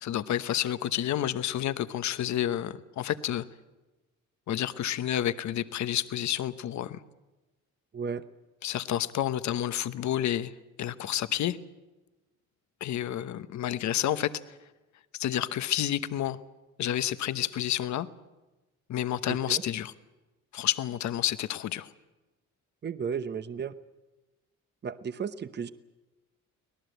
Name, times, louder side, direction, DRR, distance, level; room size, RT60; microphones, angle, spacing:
voice 1, 0.0-3.4 4.5-7.0 8.6-10.5 10.8-11.6 12.8-14.6 15.1-16.4 16.8-18.1 18.9-19.9 20.5-21.9, left 11 dB, 65° left, 13 dB, 1.0 m, -30 dB
voice 2, 7.9-8.2 19.3-19.6 22.8-23.7 24.8-25.7, right 6 dB, 35° right, 12 dB, 1.0 m, -34 dB
24.5 x 18.0 x 8.1 m, 1.1 s
cardioid pair, 90°, 30 cm